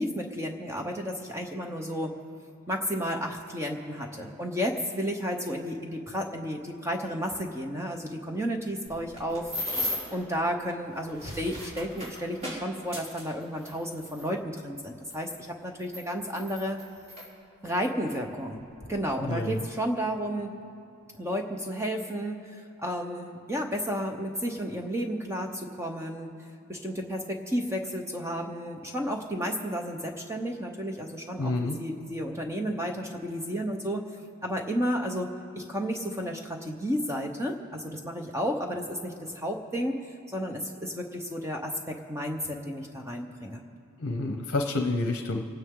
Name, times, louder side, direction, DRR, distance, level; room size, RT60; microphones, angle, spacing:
voice 1, 0.0-2.1 2.7-9.5 10.1-15.3 15.6-16.8 17.6-20.5 21.2-26.3 26.7-34.0 34.4-40.0 40.3-43.6, equal, 15° right, 2 dB, 0.8 m, -32 dB
sound 1, 8.9-10.2 11.0-14.3 15.1-15.2 15.8-17.3 18.1-18.2 18.5-18.9, left 1 dB, 30° right, 3.7 m, -36 dB
voice 2, 19.2-19.6 31.4-31.8 44.0-45.4, left 2 dB, 55° left, 5 dB, 0.8 m, -29 dB
28.5 x 9.7 x 3.7 m, 2.8 s
head